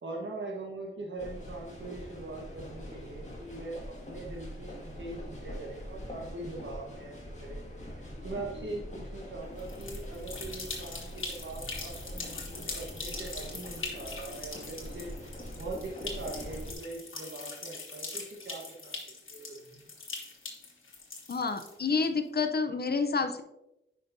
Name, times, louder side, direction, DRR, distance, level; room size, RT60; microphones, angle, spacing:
voice 1, 0.0-19.8, right 2 dB, 65° right, -2 dB, 1.3 m, -42 dB
sound 1, 1.2-16.7, left 1 dB, 35° left, 1.9 m, -43 dB
sound 2, 9.6-22.0, left 3 dB, 75° left, 1.6 m, -42 dB
voice 2, 21.3-23.4, left 4 dB, 50° left, 8 dB, 0.7 m, -29 dB
9.8 x 5.3 x 2.7 m, 0.91 s
wide cardioid pair, 80°, 21 cm